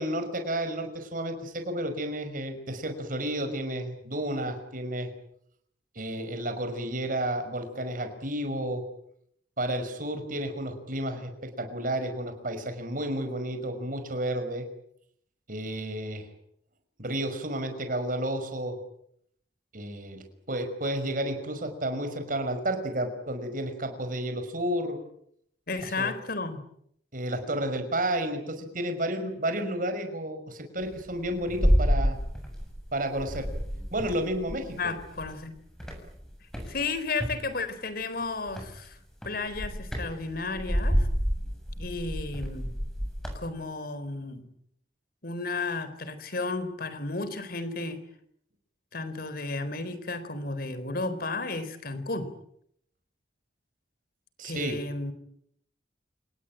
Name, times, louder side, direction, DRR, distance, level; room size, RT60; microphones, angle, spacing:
voice 1, 0.0-5.1 6.0-8.8 9.6-14.6 15.5-16.3 17.0-18.8 19.7-25.0 26.0-26.1 27.1-32.2 32.9-33.5 33.9-34.9 54.4-54.8, right 1 dB, 50° right, 7 dB, 5.6 m, -31 dB
voice 2, 25.7-26.6 34.8-35.5 36.7-39.0 39.2-41.1 41.8-42.7 43.4-44.4 45.2-48.0 48.9-52.3 54.4-55.1, left 3 dB, 60° left, 13 dB, 4.1 m, -33 dB
sound 1, 30.8-32.9 33.2-35.4 35.8-37.4 38.5-38.8 39.2-43.5, equal, 5° left, 7.5 m, -29 dB
29.0 x 19.5 x 9.0 m, 0.72 s
head